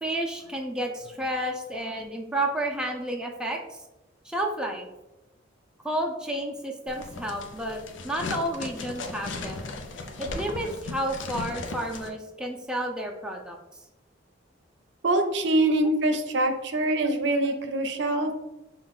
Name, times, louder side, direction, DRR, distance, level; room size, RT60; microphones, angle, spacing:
voice 1, 0.0-3.8 4.2-4.9 5.8-9.7 10.2-13.6, right 1 dB, 5° right, 0 dB, 0.4 m, -31 dB
sound 1, 6.9-12.1, left 3 dB, 75° left, 0.6 m, -37 dB
voice 2, 15.0-18.3, right 1 dB, 65° right, 6 dB, 0.6 m, -24 dB
6.0 x 2.3 x 3.6 m, 1.0 s
head